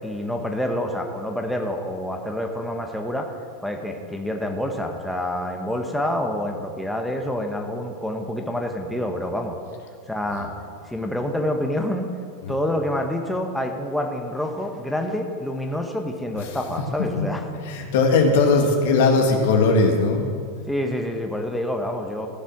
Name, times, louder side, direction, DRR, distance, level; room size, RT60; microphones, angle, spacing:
voice 1, 0.0-3.3 3.6-9.6 10.1-10.5 10.8-12.2 12.5-17.4 20.7-22.3, left 1 dB, ahead, 2 dB, 1.0 m, -27 dB
voice 2, 17.7-20.3, left 3 dB, 70° left, 2 dB, 2.0 m, -19 dB
14.5 x 7.3 x 6.0 m, 2.3 s
supercardioid pair, 125°, 0 cm